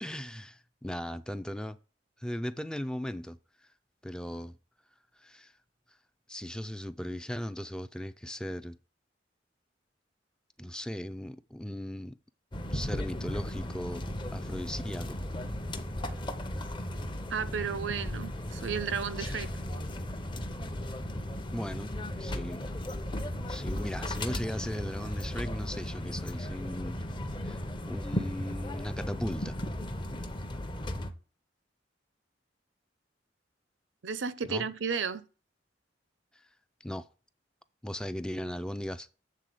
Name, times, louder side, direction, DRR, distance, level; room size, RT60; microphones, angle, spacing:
voice 1, 0.0-1.8 2.2-3.7 4.0-4.6 5.2-5.5 6.3-8.8 10.6-12.2 12.7-15.2 21.5-21.9 22.2-22.6 23.5-27.2 27.4-27.6 27.9-29.6 34.5-34.7 36.3-36.5 36.8-37.1 37.8-39.1, equal, 5° left, 0.3 m, -37 dB
sound 1, 12.5-31.1, left 1 dB, 25° left, 0.7 m, -36 dB
voice 2, 17.3-19.5 34.0-35.2, right 6 dB, 80° right, 0.6 m, -33 dB
7.6 x 3.7 x 6.6 m
head